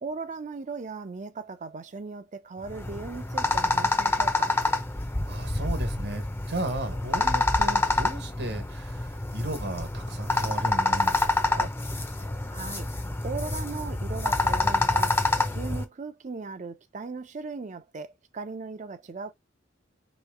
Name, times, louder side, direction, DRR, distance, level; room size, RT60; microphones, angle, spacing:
voice 1, 0.0-4.5 12.5-12.9 13.2-15.2 15.5-19.3, right 4 dB, 40° right, 0.5 m, -38 dB
sound 1, 2.6-15.8, left 2 dB, 15° left, 0.6 m, -27 dB
voice 2, 5.3-11.7, right 2 dB, 65° right, 1.3 m, -35 dB
3.1 x 3.0 x 4.6 m
head